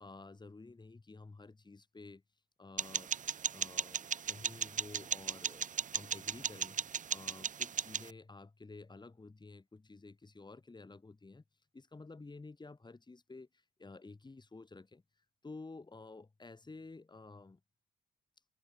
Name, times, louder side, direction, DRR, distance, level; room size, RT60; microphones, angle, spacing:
voice 1, 0.0-2.2 2.6-3.1 3.5-6.8 7.1-11.4 11.7-13.5 13.8-15.0 15.4-17.6, left 3 dB, 20° left, 6.0 m, -52 dB
sound 1, 2.8-8.1, right 7 dB, 40° right, 0.8 m, -37 dB
cardioid pair, 90°, 20 cm